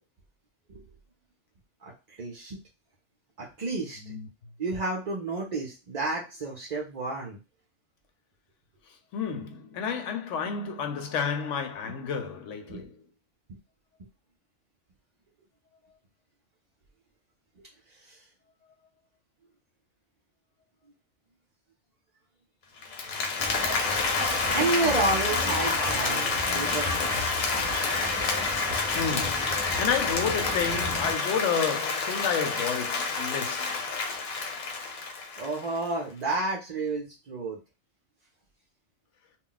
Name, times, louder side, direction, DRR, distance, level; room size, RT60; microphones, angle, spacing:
voice 1, 2.2-2.6 3.4-4.1 4.6-7.4 12.7-12.9 17.6-17.7 18.1-18.2 24.1-27.1 35.4-37.6, right 2 dB, 50° right, 0.5 m, -31 dB
voice 2, 9.1-13.0 28.9-33.9, left 6 dB, 70° left, 0.9 m, -31 dB
Applause, 22.8-35.8, left 4 dB, 85° left, 1.2 m, -29 dB
sound 1, 23.4-31.1, left 1 dB, 10° right, 0.6 m, -35 dB
2.4 x 2.1 x 3.8 m
omnidirectional pair, 1.4 m